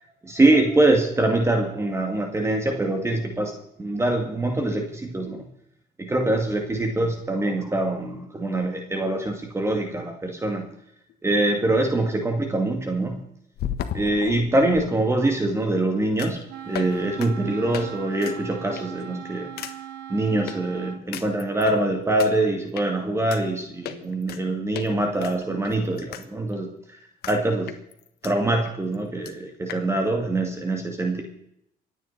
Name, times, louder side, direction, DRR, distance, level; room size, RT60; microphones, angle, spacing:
voice 1, 0.2-5.5 6.0-10.7 11.2-13.2 13.9-19.5 20.1-26.7 27.3-27.7 28.2-31.2, right 2 dB, 15° right, 3 dB, 2.1 m, -24 dB
sound 1, 11.1-11.2 13.6-14.9 16.2-16.4 16.7-16.9 17.2-17.3 17.7-17.9 18.2-18.4 18.8-19.0 19.6-19.7 20.5-20.6 21.1-21.8 22.2-22.3 22.8-22.9 23.3-23.4 23.9-24.4 24.7-24.9 25.2-26.3 26.5-26.6 27.2-27.4 27.7-28.3 28.7-28.8 28.9-29.0 29.3-29.4 29.7-29.8, left 10 dB, 70° left, 1.4 m, -34 dB
Wind instrument woodwind instrument, 16.5-21.1, right 10 dB, 90° right, 1.1 m, -39 dB
26.0 x 9.4 x 4.2 m, 0.75 s
cardioid pair, 110°, 17 cm